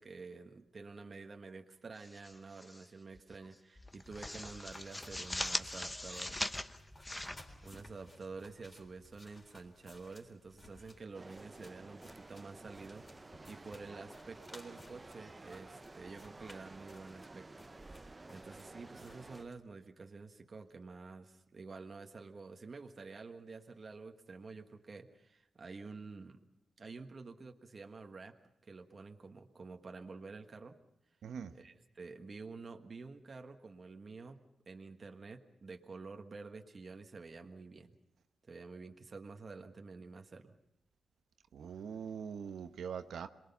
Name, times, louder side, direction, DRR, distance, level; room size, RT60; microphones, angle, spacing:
voice 1, 0.0-6.5 7.6-13.1 13.5-17.5 18.0-26.4 26.8-28.4 28.6-30.8 31.5-34.4 34.6-38.0 38.5-40.6, right 4 dB, 40° right, 5 dB, 1.5 m, -49 dB
sound 1, 2.0-2.9 3.2-3.4 3.8-8.2, left 1 dB, 15° left, 1.0 m, -41 dB
sound 2, 4.0-19.6, left 1 dB, 30° left, 3.8 m, -60 dB
sound 3, 11.1-19.4, right 2 dB, 25° right, 0.8 m, -53 dB
voice 2, 31.2-31.5 41.5-43.3, right 7 dB, 85° right, 9 dB, 1.0 m, -42 dB
27.0 x 21.5 x 5.7 m, 0.82 s
cardioid pair, 105°, 0 cm